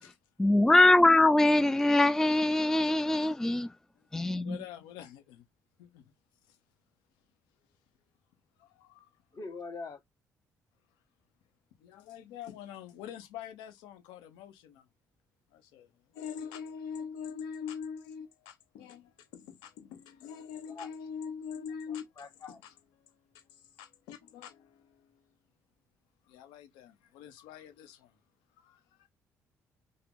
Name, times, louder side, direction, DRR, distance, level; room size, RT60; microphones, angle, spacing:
voice 1, 0.4-3.7 4.1-4.6, left 2 dB, 5° left, 0.4 m, -23 dB
voice 2, 4.4-5.4 5.8-6.1 6.5-6.6 8.6-9.1 11.8-14.9 15.5-22.1 22.5-22.7 23.0-25.3 26.3-28.2 28.6-29.1, left 7 dB, 70° left, 1.0 m, -44 dB
voice 3, 9.3-10.0 20.7-20.9 21.9-22.6, left 4 dB, 45° left, 1.4 m, -43 dB
5.6 x 2.1 x 3.8 m
figure-of-eight pair, 45°, 8 cm